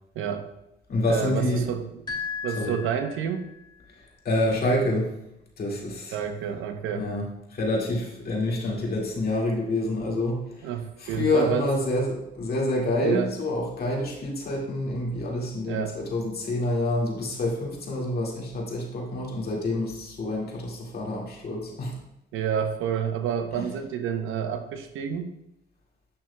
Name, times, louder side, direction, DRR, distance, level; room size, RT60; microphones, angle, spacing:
voice 1, 0.1-0.5 1.1-2.0 2.4-3.5 6.1-7.1 10.6-11.7 13.0-13.3 15.7-16.0 22.3-25.3, right 8 dB, 85° right, 7 dB, 0.8 m, -29 dB
voice 2, 0.9-1.7 2.6-2.8 4.2-5.1 5.6-6.2 7.0-7.2 7.5-10.7 11.0-21.9 23.6-23.7, left 1 dB, 50° left, -2 dB, 2.0 m, -27 dB
sound 1, 2.1-3.6, left 5 dB, 20° left, 2.6 m, -35 dB
8.9 x 6.0 x 2.2 m, 0.85 s
cardioid pair, 90°, 20 cm